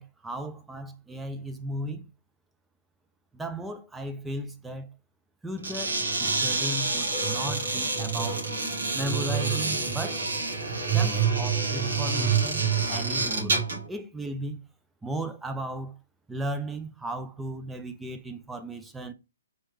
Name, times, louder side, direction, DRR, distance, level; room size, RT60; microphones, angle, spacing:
voice 1, 0.0-2.1 3.3-4.9 5.4-8.5 8.9-10.3 10.9-13.6 13.9-14.6 15.0-16.0 16.3-19.1, right 1 dB, 5° right, 0.5 m, -35 dB
sound 1, 5.6-13.9, right 4 dB, 70° right, 2.3 m, -27 dB
4.1 x 3.0 x 3.2 m
figure-of-eight pair, 130°, 0 cm